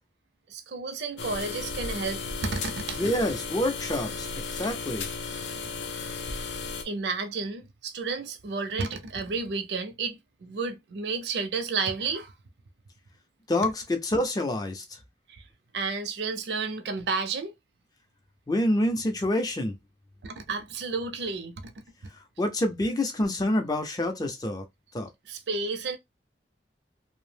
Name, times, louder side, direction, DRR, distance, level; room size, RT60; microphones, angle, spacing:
voice 1, 0.5-3.0 4.6-4.7 6.8-12.3 15.3-15.4 15.7-17.5 20.2-21.7 25.3-26.0, right 4 dB, 70° right, 0.5 m, -32 dB
sound 1, 1.2-6.8, left 4 dB, 80° left, 0.5 m, -35 dB
voice 2, 3.0-5.1 13.5-14.8 18.5-19.8 22.4-24.6 24.9-25.1, left 1 dB, 20° left, 0.4 m, -27 dB
2.6 x 2.0 x 3.2 m
head